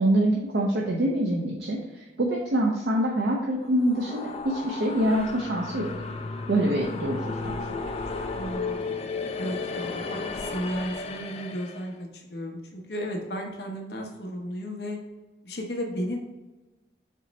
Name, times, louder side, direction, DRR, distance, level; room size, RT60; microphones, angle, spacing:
voice 1, 0.0-5.9 6.5-7.6, right 1 dB, 70° right, -1 dB, 0.6 m, -25 dB
sound 1, 3.6-11.9, left 4 dB, 35° left, 0.3 m, -34 dB
voice 2, 8.3-8.9 9.4-15.0 15.4-16.2, equal, 65° left, 1 dB, 0.8 m, -34 dB
4.3 x 3.0 x 4.1 m, 1.2 s
head